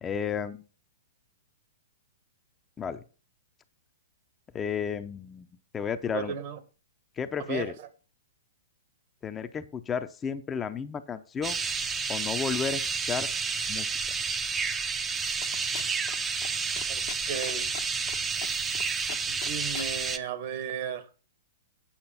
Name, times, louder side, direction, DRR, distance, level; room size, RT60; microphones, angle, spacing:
voice 1, 0.0-0.6 2.8-3.0 4.5-5.5 5.7-6.3 7.2-7.8 9.2-11.6 12.1-13.3 13.7-13.9, left 7 dB, 20° left, 0.7 m, -32 dB
voice 2, 6.1-6.6 7.5-7.9 16.9-17.7 19.3-21.1, right 7 dB, 50° right, 1.4 m, -35 dB
sound 1, 11.4-20.2, right 5 dB, 15° right, 0.7 m, -30 dB
sound 2, 15.4-16.2 16.4-16.5 16.8-18.2 18.4-18.8 19.1-19.9, left 10 dB, 65° left, 1.1 m, -40 dB
8.8 x 5.9 x 5.7 m
hypercardioid pair, 130°, 0 cm